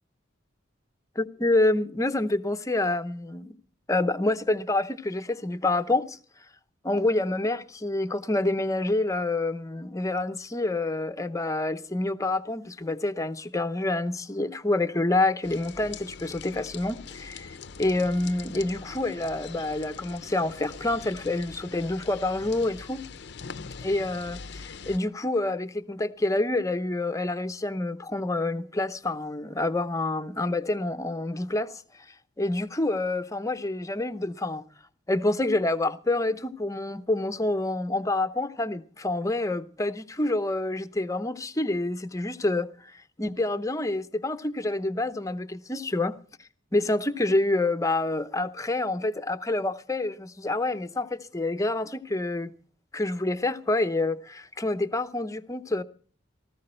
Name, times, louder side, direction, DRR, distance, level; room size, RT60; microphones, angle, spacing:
voice 1, 1.2-3.5 3.9-6.2 6.8-23.0 23.8-31.8 32.4-34.6 35.1-46.2 46.7-52.5 52.9-55.8, left 2 dB, 15° left, 0.7 m, -27 dB
sound 1, 15.4-25.0, left 5 dB, 60° left, 0.6 m, -42 dB
18.0 x 14.5 x 4.4 m
head